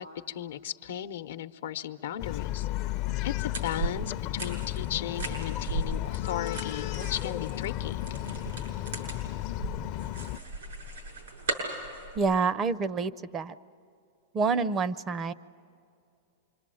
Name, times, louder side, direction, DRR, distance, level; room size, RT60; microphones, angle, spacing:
voice 1, 0.0-2.7 3.2-8.0, left 10 dB, 75° left, 10 dB, 0.8 m, -36 dB
Bark, 2.2-10.4, left 14 dB, 45° left, 0.5 m, -34 dB
sound 1, 3.5-12.2, right 2 dB, 90° right, 6.8 m, -37 dB
voice 2, 12.2-13.5 14.3-15.3, right 4 dB, 25° right, 16 dB, 0.5 m, -27 dB
26.0 x 23.5 x 7.7 m, 2.5 s
supercardioid pair, 140°, 0 cm